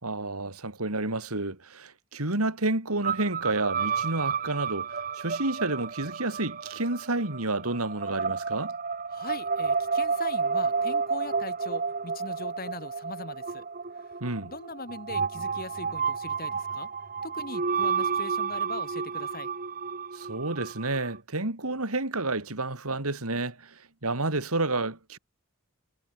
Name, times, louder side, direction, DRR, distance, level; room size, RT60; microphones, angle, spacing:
voice 1, 0.0-8.8 14.2-14.5 20.1-25.2, right 2 dB, 90° right, 3.5 m, -30 dB
sound 1, 3.0-21.2, right 5 dB, 40° right, 1.2 m, -31 dB
voice 2, 9.1-13.7 14.4-16.9 17.2-19.5, left 3 dB, 45° left, 3.5 m, -41 dB
head